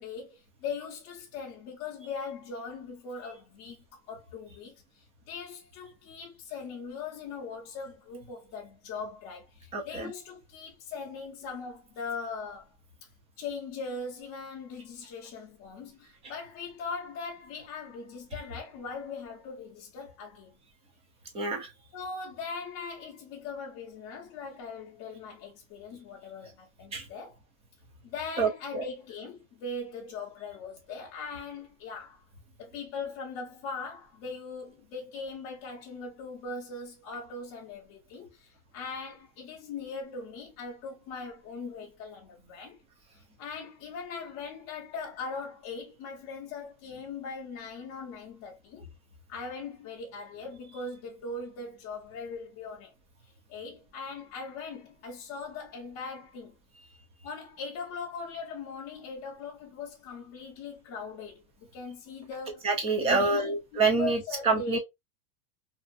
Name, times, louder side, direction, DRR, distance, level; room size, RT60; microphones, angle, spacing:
voice 1, 0.0-12.7 13.4-20.5 21.9-27.4 28.0-32.2 32.6-42.8 43.4-48.9 49.3-52.9 53.5-56.5 57.2-61.4 61.7-62.6 63.0-64.8, left 4 dB, 35° left, 0.6 m, -40 dB
voice 2, 9.7-10.1 21.3-21.7 26.9-27.1 28.4-28.8 62.6-64.8, right 4 dB, 15° right, 0.4 m, -27 dB
2.6 x 2.4 x 2.3 m
supercardioid pair, 155°, 42 cm